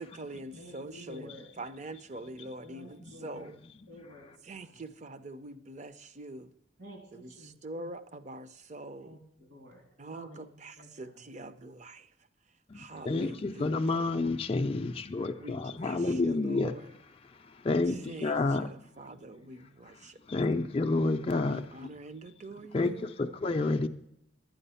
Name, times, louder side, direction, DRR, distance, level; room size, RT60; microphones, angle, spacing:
voice 1, 0.0-3.6 4.5-6.5 7.2-9.2 10.0-12.1 12.7-14.3 15.4-17.0 17.9-20.5 21.5-23.1, right 2 dB, 40° right, 0.6 m, -44 dB
voice 2, 0.6-1.5 2.6-3.5 3.9-4.8 6.8-7.8 9.0-9.8 10.1-11.3, equal, 75° right, 2.7 m, -51 dB
voice 3, 12.7-16.8 17.5-18.7 20.3-21.6 22.7-23.9, left 3 dB, 30° left, 0.4 m, -29 dB
12.0 x 9.1 x 5.6 m
head